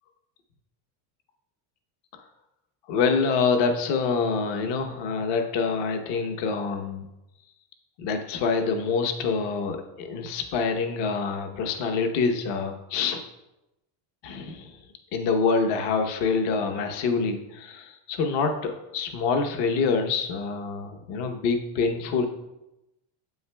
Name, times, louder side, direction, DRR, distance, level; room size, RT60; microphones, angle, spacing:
voice 1, 2.9-7.1 8.0-13.2 14.2-14.8 15.1-22.3, left 4 dB, 55° left, 5 dB, 1.0 m, -26 dB
9.2 x 8.1 x 2.2 m, 0.93 s
cardioid pair, 155°, 49 cm